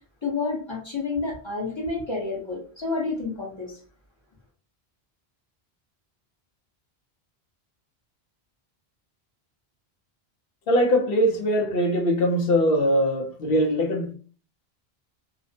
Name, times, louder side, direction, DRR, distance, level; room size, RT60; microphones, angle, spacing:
voice 1, 0.2-3.7, left 3 dB, 30° left, 0.7 m, -29 dB
voice 2, 10.7-14.1, equal, 70° left, 0.8 m, -22 dB
2.4 x 2.0 x 2.6 m
omnidirectional pair, 1.1 m